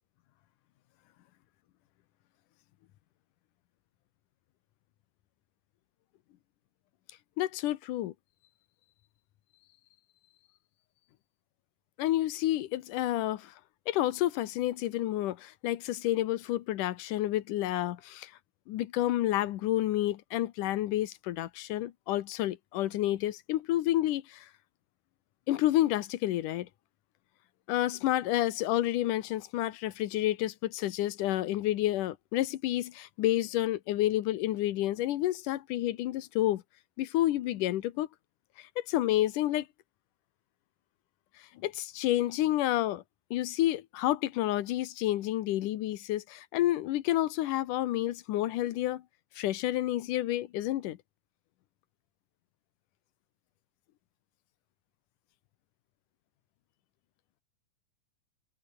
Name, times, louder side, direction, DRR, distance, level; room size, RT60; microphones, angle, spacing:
voice 1, 7.4-8.1 12.0-13.5 13.9-18.3 18.7-24.5 25.5-26.7 27.7-36.6 37.0-38.1 38.6-39.7 41.6-43.0 43.3-49.0 49.4-51.0, left 14 dB, 90° left, 2.6 m, -29 dB
omnidirectional pair, 3.5 m